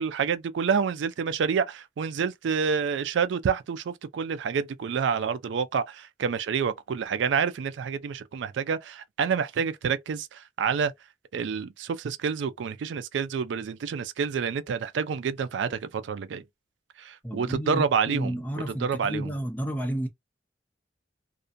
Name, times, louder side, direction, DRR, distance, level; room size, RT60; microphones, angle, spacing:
voice 1, 0.0-10.9 11.3-16.4 17.0-18.4 18.8-19.3, right 6 dB, 85° right, 0.3 m, -28 dB
voice 2, 17.2-20.1, equal, 10° left, 0.5 m, -31 dB
2.4 x 2.2 x 2.4 m
head